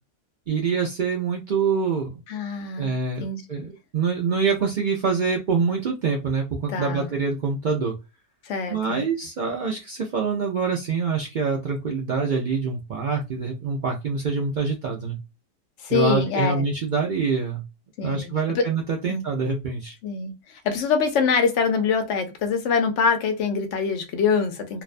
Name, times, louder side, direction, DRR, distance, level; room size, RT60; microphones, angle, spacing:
voice 1, 0.5-2.2 2.8-7.9 8.7-15.2 15.9-17.6 18.0-20.0, right 5 dB, 60° right, 0.5 m, -25 dB
voice 2, 2.3-2.9 3.2-3.4 6.7-7.1 8.4-9.0 15.8-16.7 18.0-18.3 18.5-18.7 19.1-19.2 20.0-24.8, left 5 dB, 70° left, 0.9 m, -24 dB
2.5 x 2.1 x 2.4 m
omnidirectional pair, 1.3 m